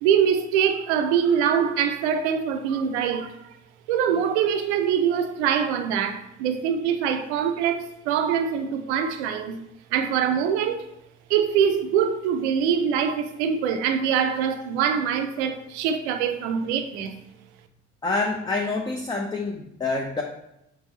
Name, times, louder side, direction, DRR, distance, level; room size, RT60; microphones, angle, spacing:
voice 1, 0.0-3.6 3.9-9.6 9.9-10.8 11.3-17.1, right 8 dB, 70° right, 0.5 m, -24 dB
voice 2, 18.0-20.2, left 3 dB, 10° left, 0.5 m, -27 dB
4.6 x 3.6 x 3.1 m
figure-of-eight pair, 45°, 34 cm